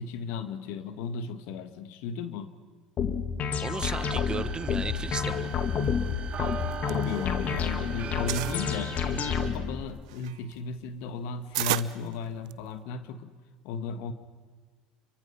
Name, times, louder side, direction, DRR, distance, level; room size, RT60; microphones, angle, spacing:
voice 1, 0.0-2.5 6.9-13.3 13.6-14.1, left 5 dB, 65° left, 10 dB, 1.6 m, -35 dB
sound 1, 3.0-9.8, left 7 dB, 45° left, 2.2 m, -30 dB
voice 2, 3.6-5.5, right 4 dB, 25° right, 12 dB, 1.3 m, -35 dB
sound 2, 3.9-9.5, right 6 dB, 45° right, 3.3 m, -40 dB
sound 3, 6.5-7.7 8.0-8.6 9.2-12.8, right 18 dB, 75° right, 0.6 m, -34 dB
29.5 x 23.5 x 5.6 m, 1.5 s
hypercardioid pair, 75°, 4 cm